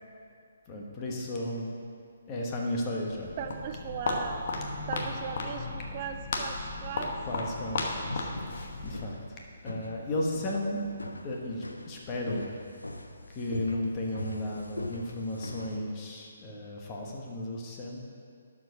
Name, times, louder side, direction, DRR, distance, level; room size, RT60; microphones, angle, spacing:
voice 1, 0.7-1.7 2.3-3.3 5.8-5.9 7.3-8.3 8.8-9.2 9.6-10.8 11.2-12.5 13.3-18.0, left 1 dB, 25° left, -1 dB, 1.3 m, -34 dB
Walk footsteps, 3.0-9.2, left 3 dB, 50° left, 1.1 m, -35 dB
voice 2, 3.4-4.4 4.9-7.2, right 8 dB, 35° right, 7 dB, 0.4 m, -38 dB
sound 1, 6.1-15.8, left 2 dB, 90° left, 0.7 m, -42 dB
11.5 x 5.0 x 5.0 m, 2.3 s
figure-of-eight pair, 140°, 0 cm